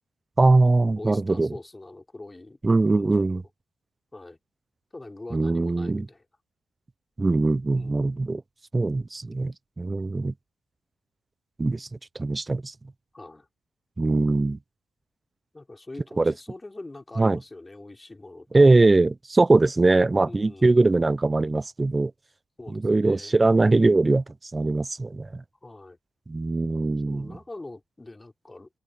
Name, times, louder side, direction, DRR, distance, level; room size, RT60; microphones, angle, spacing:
voice 1, 0.4-1.5 2.6-3.4 5.3-6.1 7.2-8.4 8.7-10.3 11.6-11.9 12.2-12.7 14.0-14.6 16.2-16.3 17.2-17.4 18.5-22.1 22.7-24.2 24.5-25.4 26.3-27.3, right 3 dB, 25° right, 0.5 m, -21 dB
voice 2, 1.0-2.6 2.8-3.4 4.1-4.4 4.9-6.2 7.7-8.2 13.1-13.5 15.5-18.9 20.3-20.9 22.6-23.4 25.6-26.0 27.0-28.7, left 2 dB, 20° left, 4.8 m, -43 dB
supercardioid pair, 60°, 0 cm